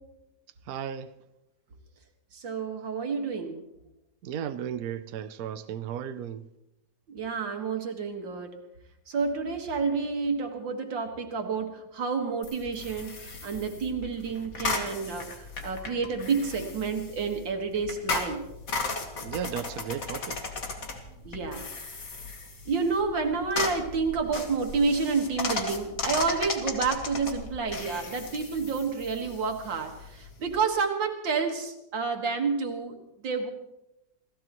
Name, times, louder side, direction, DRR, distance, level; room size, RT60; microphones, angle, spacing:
voice 1, 0.7-1.1 4.2-6.4 19.2-20.4, right 9 dB, 65° right, 1.1 m, -35 dB
voice 2, 2.3-3.6 7.1-8.5 9.1-18.5 21.2-21.6 22.7-33.0 33.2-33.5, right 5 dB, 90° right, 2.5 m, -29 dB
sound 1, 12.4-30.6, left 3 dB, 50° left, 2.1 m, -36 dB
28.5 x 16.5 x 3.1 m
omnidirectional pair, 2.0 m